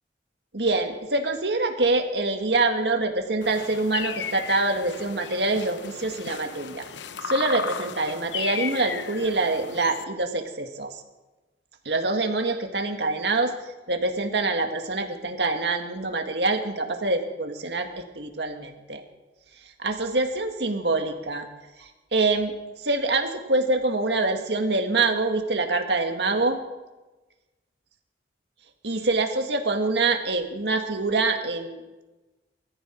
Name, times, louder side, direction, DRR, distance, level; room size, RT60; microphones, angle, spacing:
voice 1, 0.5-6.8 7.2-11.0 11.9-13.5 13.9-19.0 19.8-21.5 21.8-22.5 22.8-26.6 28.8-31.8, right 3 dB, 75° right, 4 dB, 1.9 m, -25 dB
sound 1, 3.4-10.0, left 7 dB, 90° left, 0.7 m, -35 dB
21.0 x 14.5 x 4.6 m, 1.1 s
head